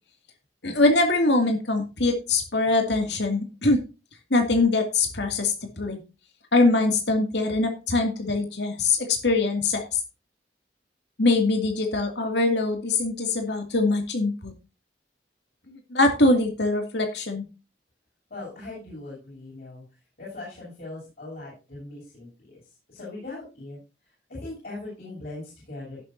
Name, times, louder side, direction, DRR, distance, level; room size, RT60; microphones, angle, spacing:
voice 1, 0.6-3.8 4.3-6.0 6.5-10.0 11.2-14.5 15.7-17.4, left 2 dB, 75° left, 4 dB, 2.5 m, -23 dB
voice 2, 18.3-19.8 20.2-23.8 24.3-26.0, left 2 dB, 55° left, -7 dB, 7.8 m, -40 dB
17.5 x 7.5 x 2.7 m, 0.29 s
head